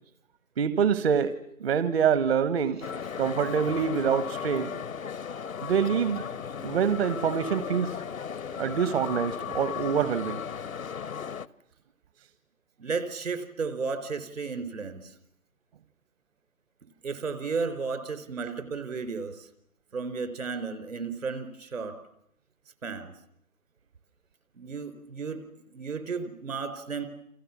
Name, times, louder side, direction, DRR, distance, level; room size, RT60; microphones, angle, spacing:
voice 1, 0.6-2.8 3.2-4.7 5.6-6.2 6.6-8.0 8.5-10.4, right 7 dB, 45° right, 14 dB, 1.3 m, -26 dB
sound 1, 2.8-11.5, left 7 dB, 75° left, 1.0 m, -36 dB
voice 2, 12.8-15.1 17.0-19.5 19.9-22.0 22.8-23.1 24.5-25.4 25.7-27.1, right 4 dB, 70° right, 11 dB, 4.6 m, -33 dB
28.5 x 28.0 x 7.3 m, 0.76 s
figure-of-eight pair, 140°, 42 cm